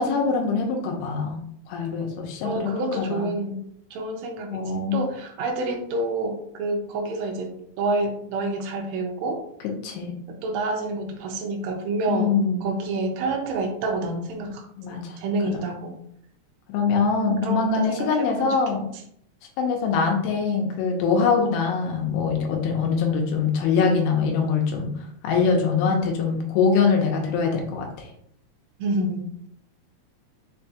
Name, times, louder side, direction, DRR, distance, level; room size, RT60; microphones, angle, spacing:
voice 1, 0.0-1.4 1.7-3.3 4.5-5.1 9.8-10.1 12.1-12.7 14.8-15.2 16.7-18.8 19.6-24.9 25.2-28.1, left 5 dB, 90° left, 2 dB, 2.2 m, -23 dB
voice 2, 2.4-3.6 3.9-9.4 10.3-12.4 12.6-16.0 17.4-18.6 28.8-29.5, right 2 dB, 85° right, 3 dB, 1.5 m, -28 dB
5.4 x 2.7 x 2.2 m, 0.69 s
omnidirectional pair, 3.6 m